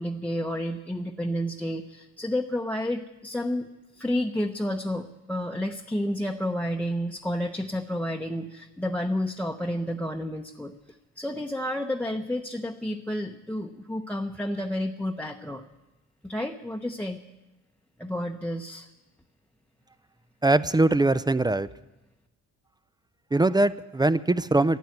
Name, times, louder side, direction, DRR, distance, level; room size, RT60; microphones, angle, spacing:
voice 1, 0.0-3.7 4.0-15.6 16.2-17.2 18.0-18.9, left 1 dB, 5° left, 3 dB, 0.9 m, -30 dB
voice 2, 20.4-21.7 23.3-24.8, right 2 dB, 15° right, 15 dB, 0.5 m, -22 dB
12.5 x 11.5 x 9.5 m, 1.0 s
cardioid pair, 90°, 30 cm